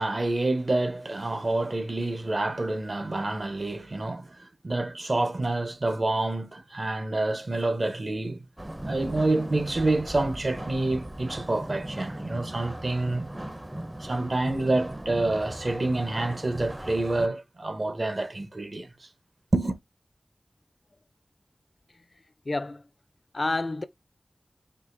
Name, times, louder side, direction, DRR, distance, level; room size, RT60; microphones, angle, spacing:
voice 1, 0.0-8.4 8.8-13.3 14.0-19.1 19.5-19.8, right 2 dB, 55° right, 0.7 m, -28 dB
sound 1, 8.6-17.3, right 1 dB, 20° right, 0.5 m, -37 dB
voice 2, 22.5-22.8 23.3-23.8, left 2 dB, 50° left, 0.4 m, -28 dB
4.8 x 2.8 x 2.5 m
wide cardioid pair, 65°, 0 cm